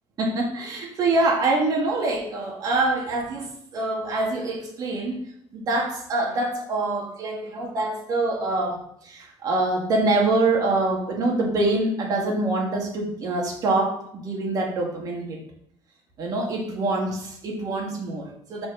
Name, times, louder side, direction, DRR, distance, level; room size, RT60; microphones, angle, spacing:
voice 1, 0.2-5.2 5.5-15.4 16.2-18.7, right 2 dB, 40° right, 0 dB, 1.9 m, -25 dB
6.1 x 4.5 x 6.2 m, 0.71 s
cardioid pair, 150°, 9 cm